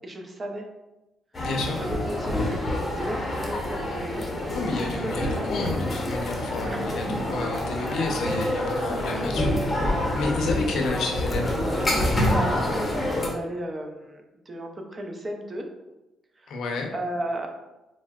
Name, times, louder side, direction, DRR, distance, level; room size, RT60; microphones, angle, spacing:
voice 1, 0.0-0.6 1.7-5.5 6.6-6.9 12.0-15.7 16.4-16.5 16.9-17.5, right 1 dB, 30° right, 3 dB, 0.5 m, -35 dB
sound 1, 1.3-13.3, left 1 dB, 25° left, 0.7 m, -27 dB
voice 2, 1.4-1.8 4.5-9.9 10.1-11.6 16.5-16.9, left 3 dB, 70° left, 1 dB, 0.6 m, -30 dB
4.3 x 2.0 x 2.3 m, 1.0 s
cardioid pair, 90°, 0 cm